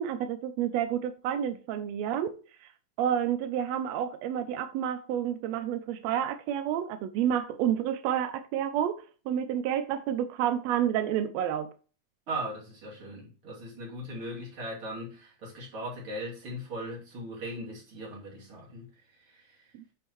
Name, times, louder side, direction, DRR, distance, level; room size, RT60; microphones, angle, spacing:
voice 1, 0.0-2.3 2.6-2.7 3.0-11.7 19.7-19.8, right 10 dB, 80° right, 1.5 m, -29 dB
voice 2, 12.3-18.9 19.3-19.5, right 1 dB, 45° right, 3.4 m, -38 dB
9.8 x 5.4 x 3.0 m
omnidirectional pair, 3.6 m